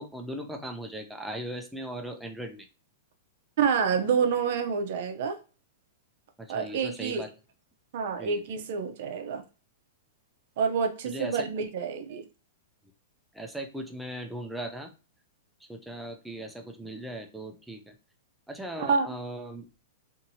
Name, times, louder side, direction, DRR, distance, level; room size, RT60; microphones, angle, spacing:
voice 1, 0.0-2.7 6.4-7.3 8.2-8.4 11.0-11.4 13.3-14.9 15.7-17.9 18.5-19.6, right 1 dB, 5° right, 0.4 m, -38 dB
voice 2, 3.6-5.4 6.5-7.2 7.9-9.4 10.6-12.3 18.8-19.1, right 6 dB, 55° right, 0.5 m, -28 dB
2.6 x 2.6 x 2.7 m
supercardioid pair, 155°, 0 cm